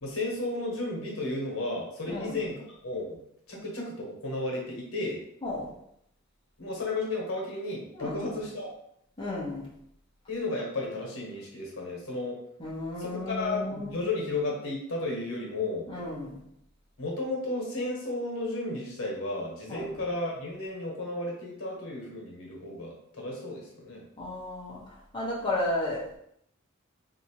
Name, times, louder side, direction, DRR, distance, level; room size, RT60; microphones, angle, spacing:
voice 1, 0.0-3.2 3.5-5.2 6.6-8.7 10.3-12.4 13.0-15.9 17.0-24.0, left 2 dB, 85° left, -2 dB, 1.2 m, -33 dB
voice 2, 2.1-2.4 5.4-5.7 7.9-8.4 9.2-9.7 12.6-14.1 15.9-16.4 19.7-19.9 24.2-26.1, left 1 dB, 20° left, -6 dB, 1.0 m, -34 dB
3.4 x 2.8 x 2.9 m, 0.73 s
head